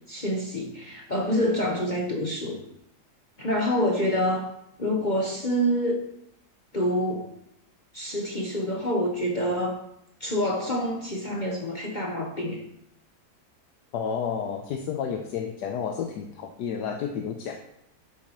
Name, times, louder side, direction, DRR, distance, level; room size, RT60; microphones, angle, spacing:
voice 1, 0.1-2.6 3.4-4.5 4.8-6.0 6.7-7.3 7.9-9.8 10.2-12.6, equal, 30° left, 0 dB, 1.1 m, -27 dB
voice 2, 13.9-17.6, left 7 dB, 85° left, 4 dB, 1.4 m, -31 dB
11.5 x 8.5 x 3.0 m, 0.78 s
omnidirectional pair, 1.7 m